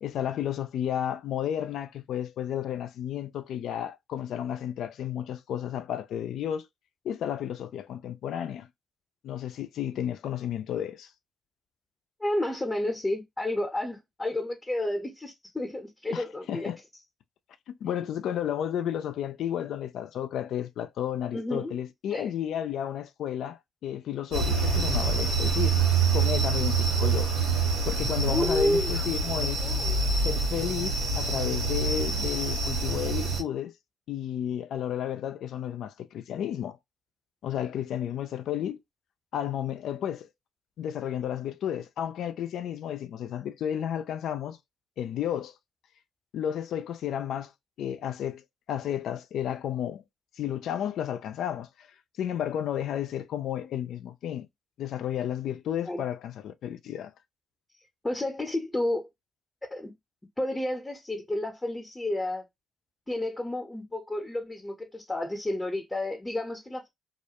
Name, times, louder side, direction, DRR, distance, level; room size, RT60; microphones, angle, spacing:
voice 1, 0.0-6.7 7.0-8.7 9.2-11.1 16.1-16.8 17.7-25.9 26.1-27.4 27.8-29.6 30.2-33.7 34.1-36.8 37.4-38.8 39.3-40.3 40.8-44.6 45.0-45.5 46.3-47.5 47.8-50.0 50.4-51.7 52.2-54.5 54.8-57.1, left 10 dB, 70° left, 0.4 m, -32 dB
voice 2, 12.2-16.7 21.3-21.7 22.1-22.3 27.0-27.1 28.2-29.0 29.6-30.0 55.9-56.0 58.0-59.1 59.7-59.9 60.4-62.4 63.1-66.9, left 1 dB, 20° left, 0.7 m, -31 dB
sound 1, 24.3-33.4, right 4 dB, 90° right, 1.1 m, -26 dB
2.4 x 2.1 x 2.8 m
hypercardioid pair, 50°, 0 cm